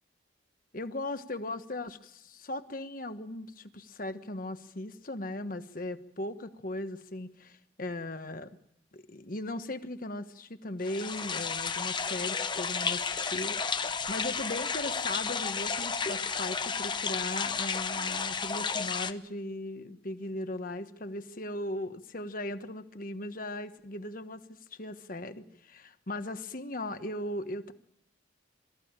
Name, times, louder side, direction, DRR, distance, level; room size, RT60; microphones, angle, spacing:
voice 1, 0.7-8.5 8.9-27.7, left 1 dB, 45° left, 9 dB, 1.3 m, -38 dB
sound 1, 10.8-19.1, left 5 dB, 25° left, 0.8 m, -32 dB
23.5 x 14.5 x 8.9 m, 0.77 s
head